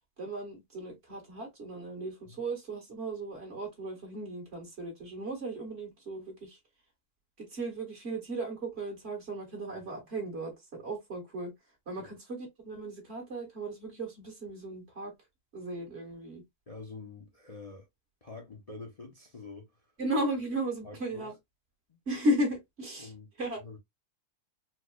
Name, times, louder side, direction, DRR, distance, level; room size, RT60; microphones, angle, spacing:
voice 1, 0.2-6.6 7.4-11.5 11.8-15.1 15.5-16.4 20.0-21.3 22.0-23.1 23.4-23.6, right 1 dB, 40° right, 1.8 m, -35 dB
voice 2, 16.7-17.9 18.2-19.7 20.8-21.3 21.9-22.0 23.0-23.3 23.6-23.8, left 3 dB, 45° left, 0.4 m, -46 dB
4.5 x 2.2 x 2.3 m
omnidirectional pair, 1.7 m